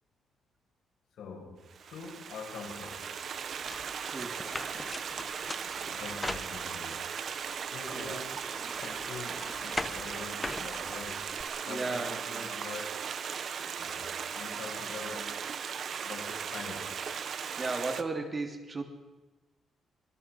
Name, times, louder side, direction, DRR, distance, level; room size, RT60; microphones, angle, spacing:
voice 1, 1.2-3.1 5.9-7.1 7.7-8.4 8.8-11.4 11.7-13.1 13.8-15.4 16.0-16.9, left 4 dB, 80° left, 1 dB, 6.6 m, -44 dB
Stream, 1.7-18.0, right 7 dB, 50° right, 1.3 m, -37 dB
sound 1, 3.6-7.0 7.5-11.4, left 2 dB, 15° left, 1.1 m, -41 dB
voice 2, 4.0-4.5 7.9-8.3 8.6-8.8 11.7-12.5 17.6-18.8, right 3 dB, 25° right, 4 dB, 3.0 m, -36 dB
24.5 x 20.5 x 6.3 m, 1.1 s
cardioid pair, 135°, 0 cm